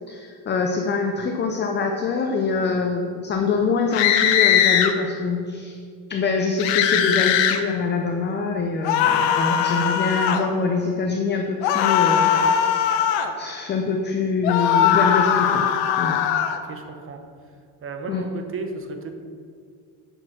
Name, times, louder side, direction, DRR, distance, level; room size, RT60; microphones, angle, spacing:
voice 1, 0.1-5.8 6.1-13.0 13.4-15.6 16.0-16.2 18.1-18.3, left 4 dB, 25° left, 2 dB, 0.6 m, -24 dB
sound 1, 3.9-4.9 6.6-7.6 8.8-10.4 11.6-13.3 14.4-16.6, left 9 dB, 80° left, 0.9 m, -20 dB
voice 2, 16.6-17.2 17.8-19.2, right 3 dB, 30° right, 5 dB, 0.9 m, -34 dB
6.7 x 6.3 x 6.0 m, 2.2 s
cardioid pair, 135°, 44 cm